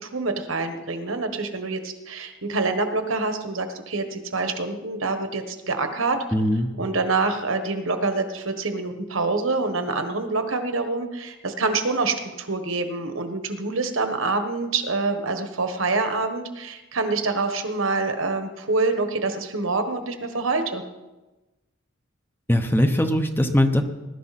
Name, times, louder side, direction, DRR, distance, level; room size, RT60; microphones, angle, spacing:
voice 1, 0.0-6.2 6.8-20.8, right 3 dB, 70° right, 7 dB, 1.4 m, -26 dB
voice 2, 6.3-6.7 22.5-23.8, left 1 dB, 10° left, 6 dB, 0.8 m, -20 dB
20.5 x 12.0 x 4.2 m, 1.1 s
head